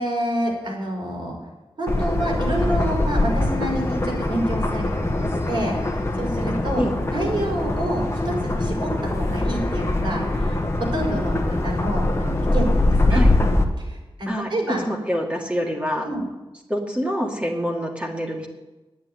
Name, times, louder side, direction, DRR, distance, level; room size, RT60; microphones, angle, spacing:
voice 1, 0.0-1.4 1.8-13.2 13.8-14.8 16.0-16.2, right 1 dB, 65° right, -2 dB, 5.2 m, -28 dB
sound 1, 1.9-13.6, left 2 dB, 30° left, 1.4 m, -23 dB
voice 2, 14.3-16.1 16.7-18.5, equal, 15° right, -1 dB, 2.0 m, -26 dB
10.0 x 9.4 x 9.4 m, 1.1 s
wide cardioid pair, 125°, 9 cm